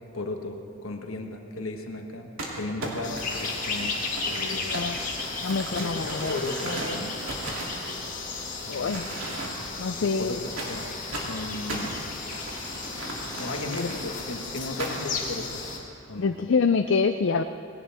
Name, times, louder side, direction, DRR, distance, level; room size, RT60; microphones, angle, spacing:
voice 1, 0.1-4.7 5.7-7.2 8.6-9.3 9.9-12.0 13.3-15.6 16.1-16.3, left 2 dB, 85° left, 4 dB, 1.4 m, -36 dB
Crumpling crinkling, 2.4-8.4 8.8-9.8 10.6-14.1 14.8-15.2, right 2 dB, 80° right, 2.7 m, -37 dB
sound 1, 3.0-15.8, left 4 dB, 35° left, 2.0 m, -34 dB
voice 2, 4.6-5.0 5.4-6.3 8.7-9.1 9.8-10.4 13.7-13.9 16.2-17.4, left 5 dB, 60° left, 8 dB, 0.4 m, -26 dB
19.5 x 17.5 x 3.5 m, 2.6 s
head